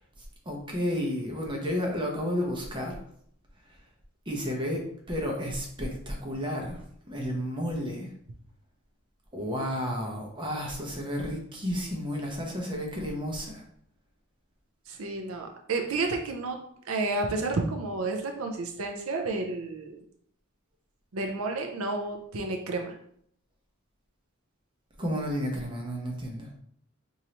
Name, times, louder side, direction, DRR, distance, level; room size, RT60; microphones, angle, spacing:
voice 1, 0.5-3.0 4.3-8.1 9.3-13.6 25.0-26.5, equal, 25° right, 0 dB, 0.8 m, -32 dB
voice 2, 14.9-16.6 16.9-20.0 21.1-22.9, right 3 dB, 80° right, 4 dB, 0.6 m, -31 dB
4.7 x 2.7 x 2.9 m, 0.66 s
head